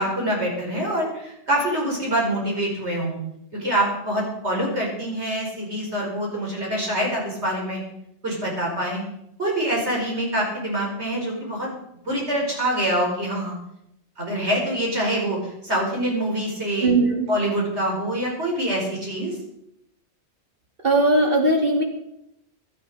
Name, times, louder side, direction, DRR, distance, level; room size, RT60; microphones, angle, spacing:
voice 1, 0.0-3.2 3.5-7.8 8.2-9.0 9.4-11.7 12.0-13.5 14.2-16.9 17.3-19.3, right 1 dB, 70° right, -2 dB, 5.5 m, -25 dB
voice 2, 16.8-17.3 20.8-21.8, right 2 dB, 50° right, 1 dB, 3.0 m, -19 dB
17.0 x 11.5 x 5.0 m, 0.79 s
omnidirectional pair, 1.2 m